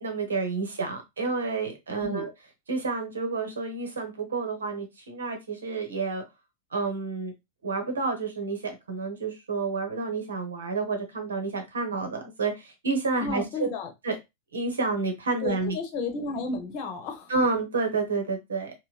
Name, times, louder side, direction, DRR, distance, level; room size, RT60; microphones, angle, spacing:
voice 1, 0.0-2.3 2.7-6.2 6.7-7.3 7.6-13.7 14.0-14.2 14.5-15.8 17.3-18.7, right 4 dB, 70° right, 0.9 m, -29 dB
voice 2, 13.2-13.9 15.4-17.3, left 3 dB, 40° left, 0.9 m, -32 dB
4.0 x 2.1 x 2.4 m
figure-of-eight pair, 90°, 0 cm